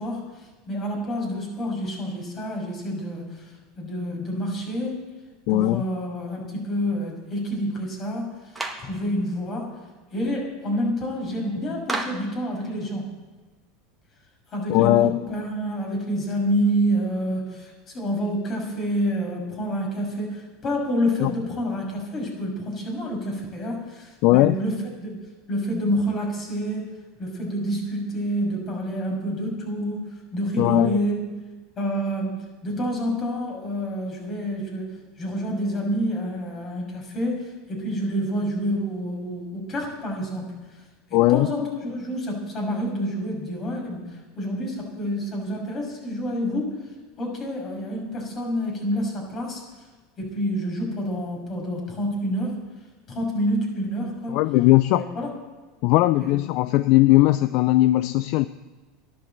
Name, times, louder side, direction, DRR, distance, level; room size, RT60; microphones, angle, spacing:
voice 1, 0.0-5.0 5.5-9.7 10.1-13.1 14.5-25.2 25.5-26.9 27.2-31.3 31.8-40.8 41.1-46.7 47.2-49.6 50.2-52.6 53.1-54.4 54.9-55.3 56.2-56.3, equal, 35° left, 0 dB, 6.1 m, -28 dB
voice 2, 5.5-5.8 14.7-15.2 21.2-21.3 24.2-24.6 30.6-31.0 41.1-41.7 54.3-55.0 55.8-58.5, left 17 dB, 60° left, 14 dB, 0.4 m, -19 dB
Clapping, 8.6-8.9 11.9-12.3, right 2 dB, 10° right, 2.0 m, -30 dB
12.0 x 11.0 x 7.9 m, 1.3 s
supercardioid pair, 110°, 0 cm